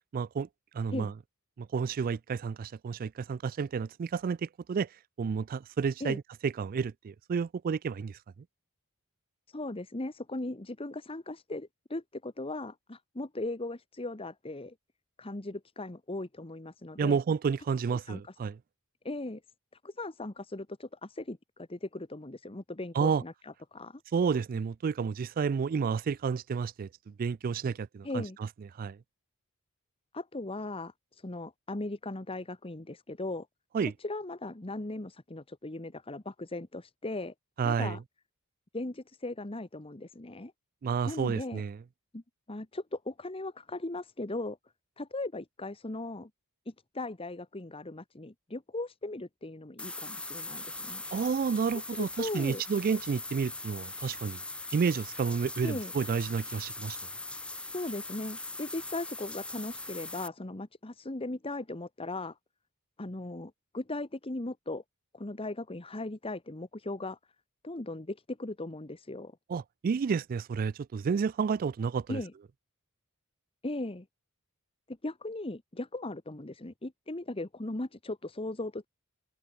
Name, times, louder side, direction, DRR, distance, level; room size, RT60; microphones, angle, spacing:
voice 1, 0.1-0.5 0.7-1.1 1.6-4.9 5.2-8.2 17.0-18.6 23.0-23.2 24.1-28.2 28.8-29.0 33.7-33.9 37.6-38.0 40.8-41.8 51.1-54.4 54.7-57.0 69.5-72.2, right 6 dB, 40° right, 0.3 m, -30 dB
voice 2, 9.5-14.7 15.2-17.2 18.1-18.3 19.0-19.4 19.8-24.0 28.0-28.4 30.1-33.5 33.8-37.3 37.6-38.0 38.7-40.5 41.0-41.6 42.1-42.2 42.5-44.6 45.0-46.3 46.7-51.0 51.9-52.6 55.6-55.9 57.7-62.4 63.0-64.8 65.1-67.2 67.6-69.4 72.1-72.3 73.6-74.1 74.9-78.9, left 2 dB, 25° left, 1.2 m, -38 dB
sound 1, 49.8-60.3, left 2 dB, 5° left, 0.9 m, -41 dB
head